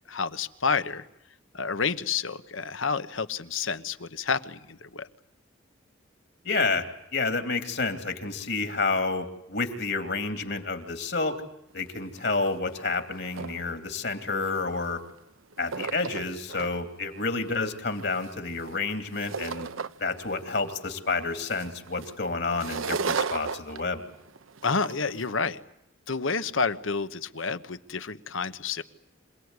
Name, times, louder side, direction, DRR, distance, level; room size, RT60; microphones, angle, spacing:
voice 1, 0.1-1.1 1.5-5.1 24.6-25.6 26.1-28.8, left 5 dB, 80° left, 12 dB, 1.2 m, -29 dB
voice 2, 6.4-6.9 7.1-11.4 11.7-15.0 15.6-19.7 20.0-24.0, left 3 dB, 55° left, 7 dB, 2.9 m, -29 dB
sound 1, 11.9-12.0 12.2-12.5 12.9-13.7 14.4-15.2 15.5-16.7 17.2-20.2 20.5-25.3, right 5 dB, 90° right, 0.9 m, -35 dB
27.5 x 18.5 x 9.7 m, 0.84 s
head